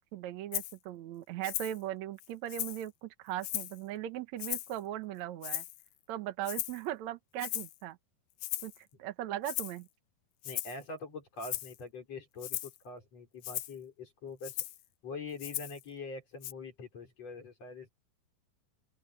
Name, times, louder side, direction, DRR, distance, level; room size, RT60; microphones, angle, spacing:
voice 1, 0.0-5.6 6.1-8.0 8.6-9.9, right 12 dB, 65° right, 1.8 m, -39 dB
Rattle (instrument), 0.5-0.7 1.4-1.8 2.2-2.9 3.4-3.8 4.4-4.8 5.4-5.9 6.4-6.8 7.4-7.8 8.4-8.8 9.4-9.8 10.4-10.8 11.4-11.8 12.4-12.8 13.4-13.7 14.4-14.8 15.4-15.8 16.4-16.5, left 15 dB, 75° left, 1.8 m, -37 dB
voice 2, 10.4-14.6 15.0-17.9, left 3 dB, 40° left, 5.7 m, -44 dB
open air
omnidirectional pair, 4.4 m